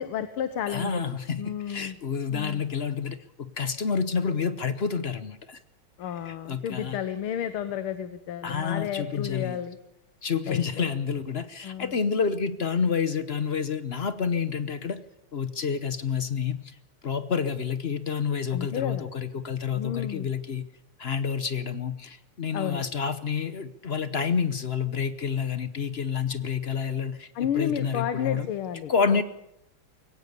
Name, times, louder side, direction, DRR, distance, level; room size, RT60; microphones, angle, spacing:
voice 1, 0.0-1.0 1.4-2.0 2.3-2.6 6.0-9.8 10.5-10.8 11.6-11.9 18.5-19.1 19.7-20.3 22.5-22.8 27.4-29.2, left 9 dB, 80° left, 10 dB, 1.9 m, -32 dB
voice 2, 0.7-5.6 6.2-7.0 8.4-9.6 10.2-15.0 15.3-16.8 17.0-20.7 21.0-28.5 28.9-29.2, left 6 dB, 55° left, 12 dB, 0.7 m, -29 dB
23.0 x 18.0 x 6.8 m, 0.81 s
omnidirectional pair, 2.4 m